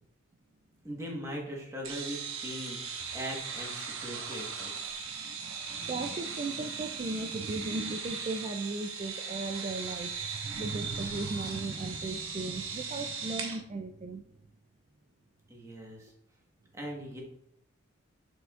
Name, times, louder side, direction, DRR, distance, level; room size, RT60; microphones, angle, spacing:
voice 1, 0.8-4.9 15.5-16.1 16.7-17.2, equal, 15° right, -1 dB, 1.3 m, -40 dB
sound 1, 1.8-13.6, right 5 dB, 80° right, 1.2 m, -38 dB
voice 2, 5.1-14.2, right 3 dB, 30° right, 5 dB, 0.3 m, -37 dB
6.7 x 6.4 x 2.4 m, 0.73 s
head